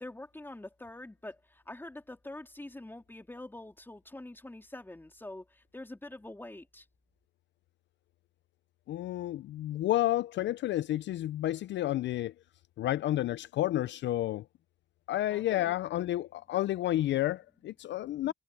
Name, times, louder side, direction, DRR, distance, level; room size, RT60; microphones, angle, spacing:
voice 1, 0.0-6.9 15.3-15.8 18.2-18.3, left 1 dB, 10° left, 3.5 m, -45 dB
voice 2, 8.9-12.3 12.8-14.4 15.1-18.3, left 14 dB, 65° left, 0.4 m, -30 dB
cardioid pair, 90°, 20 cm